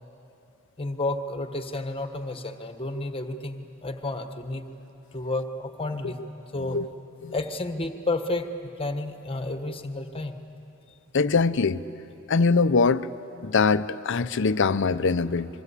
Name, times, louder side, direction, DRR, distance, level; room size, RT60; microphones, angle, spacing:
voice 1, 0.8-4.7 5.1-6.2 6.5-6.8 7.3-8.5 8.8-10.4, left 2 dB, 25° left, 8 dB, 1.3 m, -31 dB
voice 2, 11.1-11.8 12.3-13.1 13.4-15.5, left 4 dB, 65° left, 14 dB, 0.6 m, -22 dB
26.5 x 23.0 x 8.4 m, 3.0 s
head